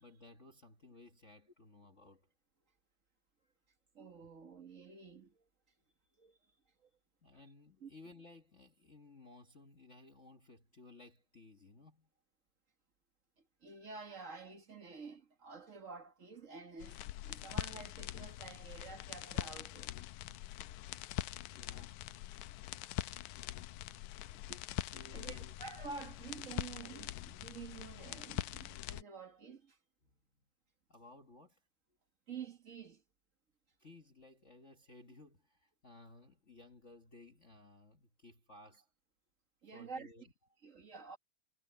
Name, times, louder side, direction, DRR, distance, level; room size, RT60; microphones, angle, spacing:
voice 1, 0.0-2.3 7.2-12.1 21.5-22.0 23.0-23.1 24.9-25.6 30.0-30.2 30.9-31.6 33.8-38.9 39.7-40.3, left 2 dB, 40° left, 1.0 m, -58 dB
voice 2, 3.9-5.3 6.2-6.3 7.8-7.9 13.6-19.9 22.8-22.9 24.5-24.6 24.9-29.7 32.3-33.0 39.6-40.1 40.6-41.2, right 5 dB, 40° right, 1.2 m, -49 dB
sound 1, 16.8-29.0, left 15 dB, 80° left, 2.0 m, -43 dB
omnidirectional pair, 3.6 m